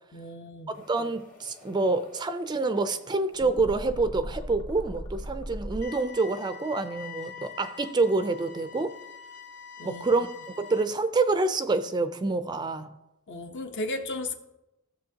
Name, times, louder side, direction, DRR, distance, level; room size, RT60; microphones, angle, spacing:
voice 1, 0.1-0.8 9.8-10.2 13.3-14.4, left 2 dB, 55° left, 0.8 m, -35 dB
sound 1, 0.7-5.8, equal, 40° left, 1.2 m, -40 dB
voice 2, 0.7-8.9 9.8-10.3 10.6-12.9, right 3 dB, 20° right, 0.4 m, -27 dB
sound 2, 5.8-10.8, left 8 dB, 80° left, 1.0 m, -44 dB
14.5 x 7.1 x 2.8 m
head